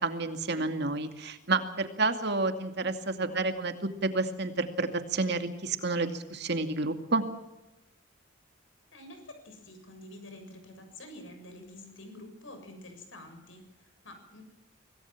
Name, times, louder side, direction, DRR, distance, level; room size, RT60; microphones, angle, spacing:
voice 1, 0.0-7.2, right 3 dB, 60° right, 7 dB, 2.4 m, -30 dB
voice 2, 3.2-3.6 8.9-14.4, left 1 dB, 90° left, 6 dB, 7.0 m, -48 dB
26.0 x 18.5 x 7.5 m, 0.96 s
head